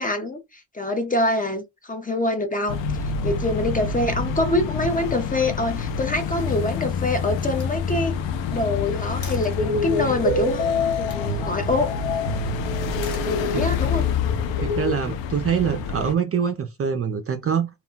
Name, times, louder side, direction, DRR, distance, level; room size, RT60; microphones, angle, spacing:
voice 1, 0.0-8.1 8.5-10.7 11.0-11.9 13.3-14.0, left 2 dB, 20° left, 0.5 m, -25 dB
sound 1, 2.7-16.1, left 5 dB, 80° left, 0.5 m, -28 dB
Slam, 6.3-6.8 7.3-9.8 10.8-11.3 12.8-13.9, left 3 dB, 35° left, 1.1 m, -44 dB
sound 2, 9.6-14.9, left 3 dB, 60° left, 1.0 m, -26 dB
voice 2, 14.6-17.7, right 7 dB, 35° right, 0.4 m, -24 dB
2.3 x 2.1 x 3.8 m
cardioid pair, 90°, 45 cm